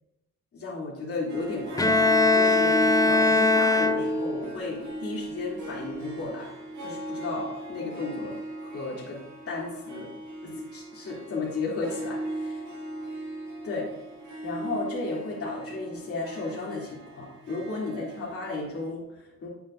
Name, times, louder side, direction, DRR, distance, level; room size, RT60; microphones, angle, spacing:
voice 1, 0.5-6.5 6.8-9.2 9.5-10.1 10.4-12.6 13.6-13.9 14.4-19.5, left 3 dB, 50° left, -5 dB, 2.7 m, -34 dB
Harp, 1.3-18.9, right 1 dB, 75° right, 1.9 m, -36 dB
Bowed string instrument, 1.8-4.5, left 3 dB, 10° left, 0.4 m, -21 dB
8.6 x 6.8 x 2.5 m, 0.91 s
cardioid pair, 90°, 30 cm